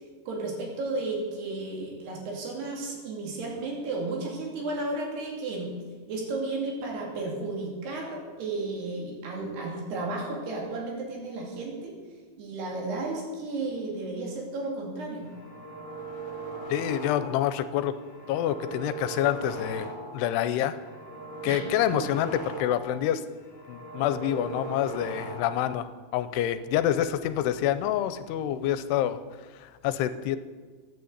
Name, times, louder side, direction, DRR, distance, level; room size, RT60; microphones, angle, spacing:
voice 1, 0.3-5.7 6.1-11.9 12.4-15.3 21.5-21.7, right 2 dB, 75° right, -1 dB, 4.8 m, -33 dB
sound 1, 15.2-17.6 17.9-20.3 20.6-23.0 23.3-25.7, right 3 dB, 35° left, 1.3 m, -39 dB
voice 2, 16.7-18.0 18.3-20.8 21.4-23.2 23.7-25.9 26.1-29.2 29.5-30.4, left 11 dB, 85° left, 12 dB, 2.7 m, -27 dB
13.0 x 9.1 x 8.1 m, 1.4 s
omnidirectional pair, 4.8 m